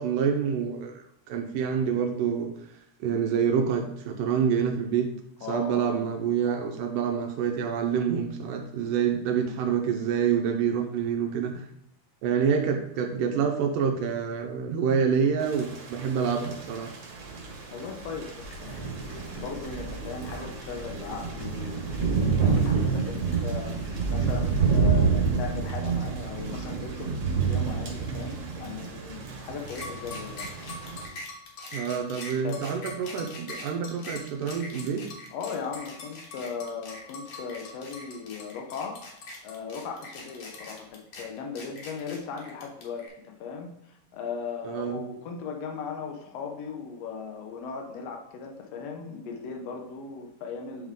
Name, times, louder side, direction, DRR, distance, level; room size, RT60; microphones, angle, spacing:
voice 1, 0.0-2.5 3.0-5.1 5.5-11.7 12.2-16.9 31.7-35.0 44.6-45.0, right 7 dB, 85° right, 3 dB, 2.2 m, -27 dB
voice 2, 5.4-6.0 17.7-30.5 32.4-32.6 35.3-39.0 39.4-50.9, left 5 dB, 85° left, 3 dB, 1.4 m, -38 dB
Thunder / Rain, 15.4-31.1, right 5 dB, 55° right, 2.2 m, -29 dB
sound 1, 18.4-24.7, left 2 dB, 30° left, 1.4 m, -45 dB
sound 2, 29.7-43.1, left 2 dB, 60° left, 2.0 m, -42 dB
9.9 x 3.6 x 3.6 m, 0.78 s
omnidirectional pair, 3.9 m